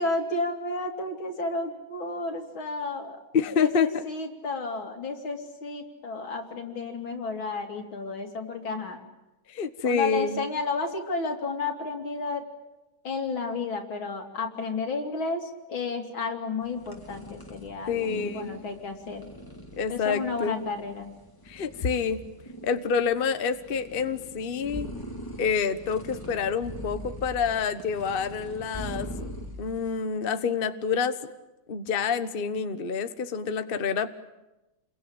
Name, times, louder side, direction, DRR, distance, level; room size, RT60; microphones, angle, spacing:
voice 1, 0.0-3.2 3.6-9.0 9.8-12.5 13.0-19.3 19.9-21.1, left 3 dB, 80° left, 3 dB, 3.7 m, -32 dB
voice 2, 3.3-3.9 9.5-10.4 17.9-18.6 19.8-20.6 21.5-22.2 22.6-24.9 25.4-29.3 29.6-31.2 31.7-34.1, left 6 dB, 35° left, 10 dB, 1.1 m, -27 dB
sound 1, 16.6-30.0, equal, 10° left, 2.5 m, -42 dB
29.5 x 22.5 x 8.9 m, 1.0 s
omnidirectional pair, 2.2 m